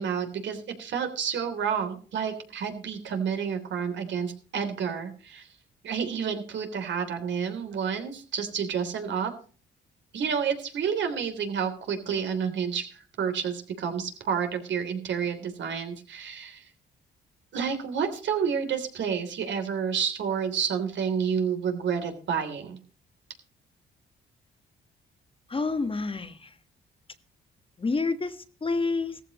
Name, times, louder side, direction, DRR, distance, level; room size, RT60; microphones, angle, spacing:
voice 1, 0.0-5.5 5.8-9.3 10.1-16.7 17.5-22.8, right 7 dB, 65° right, 6 dB, 3.3 m, -30 dB
voice 2, 25.5-26.5 27.8-28.3 28.6-29.2, left 3 dB, 25° left, 10 dB, 1.4 m, -28 dB
16.0 x 14.5 x 3.1 m, 0.40 s
cardioid pair, 90°, 20 cm